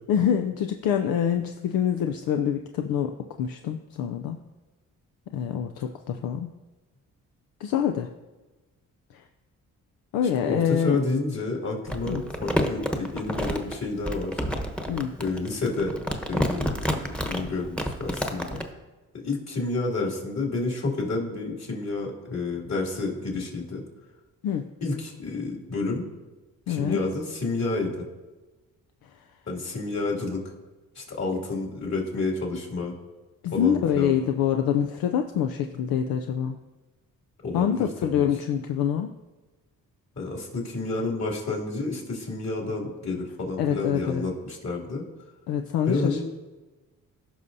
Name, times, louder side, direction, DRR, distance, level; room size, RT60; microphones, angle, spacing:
voice 1, 0.1-4.4 5.3-6.5 7.6-8.1 9.1-9.2 10.1-11.0 12.1-12.2 14.9-15.2 24.4-24.7 26.7-27.0 33.4-36.6 37.5-39.1 43.6-44.2 45.5-46.2, left 9 dB, 80° left, 6 dB, 0.6 m, -26 dB
voice 2, 10.4-14.4 15.2-16.0 16.3-18.6 19.2-23.8 24.8-26.0 26.7-28.1 29.5-30.4 30.9-32.9 33.5-34.2 37.4-38.2 40.1-45.0 45.9-46.2, left 3 dB, 50° left, -1 dB, 2.7 m, -30 dB
Crumpling crinkling, 11.9-18.7, equal, 5° left, 1.1 m, -29 dB
15.0 x 5.6 x 2.7 m, 1.2 s
cardioid pair, 65°, 35 cm